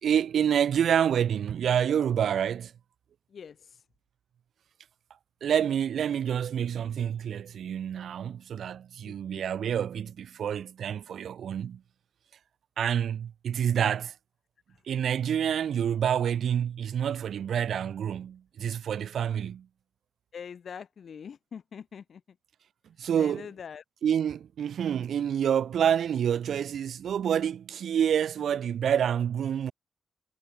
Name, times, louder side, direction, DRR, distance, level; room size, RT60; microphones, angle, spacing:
voice 1, 0.0-2.7 5.4-11.8 12.8-14.1 14.9-19.7 23.0-23.5 24.0-29.7, right 9 dB, 70° right, 2.0 m, -28 dB
voice 2, 9.0-9.4 20.3-22.2 23.2-23.8, left 7 dB, 55° left, 1.5 m, -43 dB
cardioid pair, 110°, 0 cm